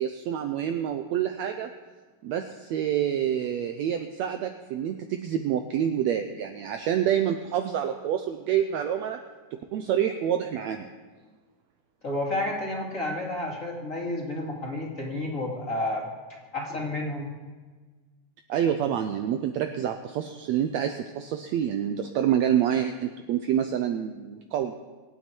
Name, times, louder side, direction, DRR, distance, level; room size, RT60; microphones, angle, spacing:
voice 1, 0.0-1.7 2.2-9.2 9.5-10.9 18.5-24.7, right 9 dB, 80° right, 6 dB, 1.6 m, -27 dB
voice 2, 12.0-16.1 16.5-17.3, left 1 dB, 25° left, -2 dB, 2.6 m, -30 dB
26.0 x 9.1 x 4.5 m, 1.4 s
omnidirectional pair, 3.8 m